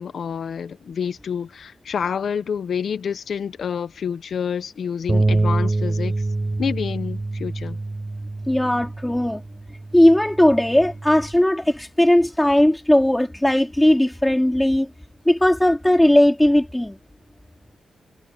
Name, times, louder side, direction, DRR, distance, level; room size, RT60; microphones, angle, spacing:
voice 1, 0.0-6.1 6.6-7.8, left 7 dB, 60° left, 1.3 m, -28 dB
sound 1, 5.1-11.3, right 2 dB, 20° right, 5.0 m, -26 dB
voice 2, 8.5-9.4 9.9-14.9 15.3-17.0, left 1 dB, 5° left, 4.0 m, -17 dB
cardioid pair, 95°, 0 cm